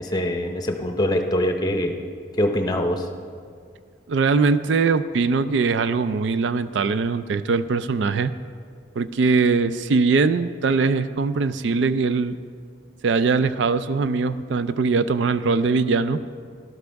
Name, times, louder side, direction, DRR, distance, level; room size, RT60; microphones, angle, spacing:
voice 1, 0.0-1.9 2.4-3.1, left 1 dB, 20° left, 4 dB, 0.7 m, -23 dB
voice 2, 4.1-8.3 9.0-12.4 13.0-16.2, right 4 dB, 80° right, 12 dB, 0.4 m, -21 dB
13.0 x 12.0 x 3.5 m, 2.1 s
head